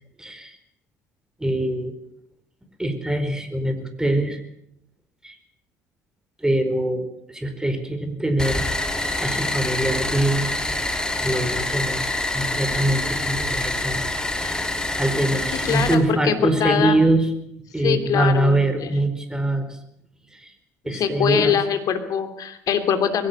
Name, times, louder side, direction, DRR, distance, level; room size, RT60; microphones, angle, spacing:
voice 1, 0.2-0.6 1.4-1.9 2.8-4.4 5.2-5.4 6.4-8.6 9.2-10.5 11.2-12.0 12.3-14.0 14.4-14.7 15.0-17.3 17.7-19.8 20.3-20.5 20.8-21.6, right 1 dB, 10° right, 8 dB, 4.6 m, -23 dB
sound 1, 8.4-15.9, left 1 dB, 10° left, 3.2 m, -26 dB
voice 2, 15.6-17.0 17.8-18.9 20.9-23.3, left 8 dB, 50° left, 9 dB, 2.9 m, -23 dB
21.5 x 17.0 x 8.6 m, 0.76 s
hypercardioid pair, 55°, 8 cm